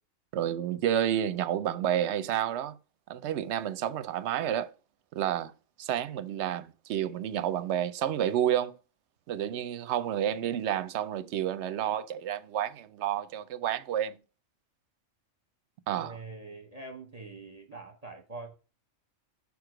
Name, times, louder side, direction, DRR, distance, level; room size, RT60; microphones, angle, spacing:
voice 1, 0.3-2.8 3.1-4.7 5.1-5.5 5.8-8.8 9.3-14.2 15.9-16.2, right 10 dB, 65° right, 0.8 m, -30 dB
voice 2, 15.9-18.5, right 3 dB, 35° right, 0.8 m, -44 dB
7.0 x 4.8 x 4.9 m
omnidirectional pair, 1.4 m